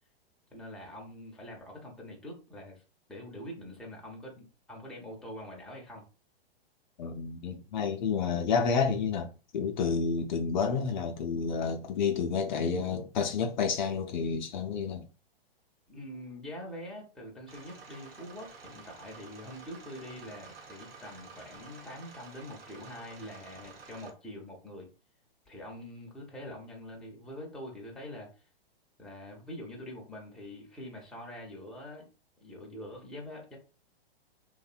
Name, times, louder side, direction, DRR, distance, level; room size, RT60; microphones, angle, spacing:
voice 1, 0.5-2.8 3.1-6.0 15.9-24.9 25.5-28.3 29.0-32.1 32.4-33.6, left 1 dB, ahead, 0.6 m, -44 dB
voice 2, 7.0-15.1, left 5 dB, 50° left, 0.4 m, -30 dB
sound 1, 17.5-24.1, right 4 dB, 75° right, 0.9 m, -51 dB
2.6 x 2.1 x 2.4 m
hypercardioid pair, 120°, 30 cm